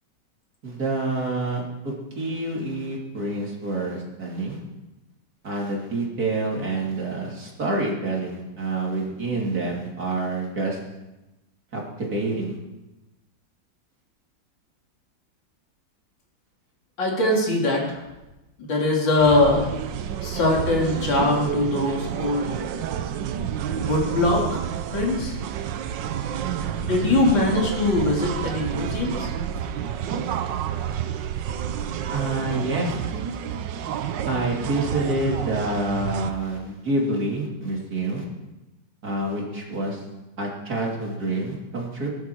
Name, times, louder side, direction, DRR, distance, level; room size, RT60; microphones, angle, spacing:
voice 1, 0.6-1.6 2.2-4.6 5.4-10.8 11.7-12.6 32.1-33.0 34.2-38.3 39.0-40.0 40.4-42.1, right 2 dB, 55° right, -2 dB, 3.3 m, -27 dB
voice 2, 17.0-18.0 18.6-19.7 20.2-22.6 23.7-24.7 24.9-25.4 26.8-29.3, left 2 dB, 85° left, -1 dB, 3.8 m, -22 dB
sound 1, 19.2-36.3, right 9 dB, 75° right, 1.5 m, -29 dB
20.5 x 11.5 x 4.6 m, 1.0 s
omnidirectional pair, 2.0 m